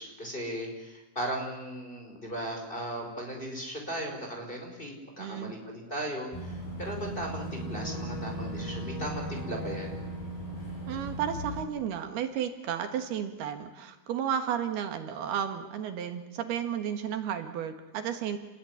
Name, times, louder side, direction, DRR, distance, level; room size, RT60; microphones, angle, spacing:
voice 1, 0.0-10.0, right 1 dB, 10° left, 1 dB, 5.3 m, -37 dB
voice 2, 5.2-5.5 10.9-18.4, right 9 dB, 80° right, 7 dB, 3.7 m, -33 dB
Boat Water vehicle / Engine, 6.3-11.6, right 1 dB, 65° left, 9.1 m, -37 dB
29.0 x 20.5 x 9.9 m, 1.1 s
omnidirectional pair, 4.6 m